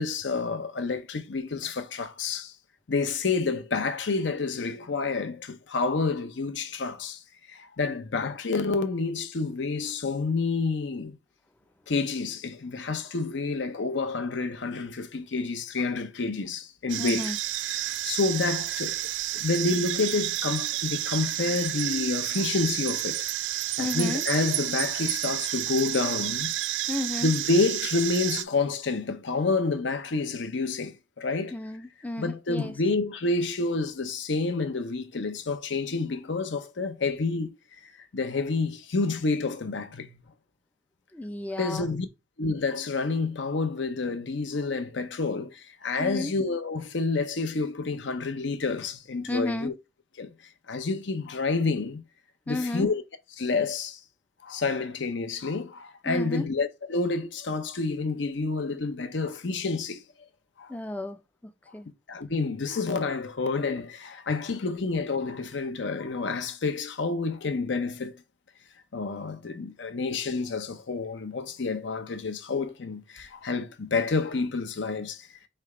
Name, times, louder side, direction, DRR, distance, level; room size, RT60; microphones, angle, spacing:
voice 1, 0.0-2.5 2.9-7.2 7.5-11.1 11.9-17.3 17.7-19.0 19.3-23.3 23.8-26.5 27.2-31.6 32.2-37.5 37.8-40.2 41.6-42.1 42.4-49.7 50.2-50.3 50.7-52.0 52.5-53.0 53.4-54.0 54.4-60.0 60.6-60.7 62.1-68.1 68.9-75.3, left 3 dB, 80° left, 0.7 m, -29 dB
sound 1, 16.9-28.4, right 14 dB, 90° right, 0.4 m, -30 dB
voice 2, 17.0-17.4 23.8-24.2 26.9-27.3 31.5-32.7 41.1-41.9 46.0-46.3 49.3-49.7 52.5-52.9 56.1-56.4 60.7-61.9, left 2 dB, 10° left, 0.3 m, -33 dB
3.3 x 3.3 x 4.8 m
head